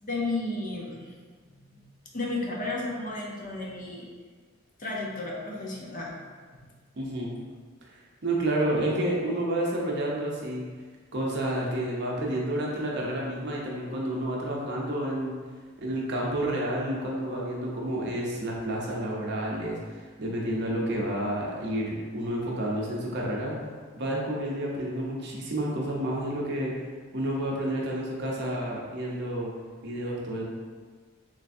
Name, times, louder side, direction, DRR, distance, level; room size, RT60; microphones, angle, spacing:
voice 1, 0.0-1.1 1.5-1.8 2.1-4.1 4.8-6.2, left 2 dB, 40° left, -2 dB, 0.6 m, -33 dB
voice 2, 7.0-7.3 7.9-10.6 11.1-15.3 15.8-23.6 23.9-26.7 27.1-29.5 29.8-30.4, right 1 dB, 55° right, -2 dB, 0.7 m, -30 dB
3.3 x 3.2 x 2.6 m, 1.5 s
head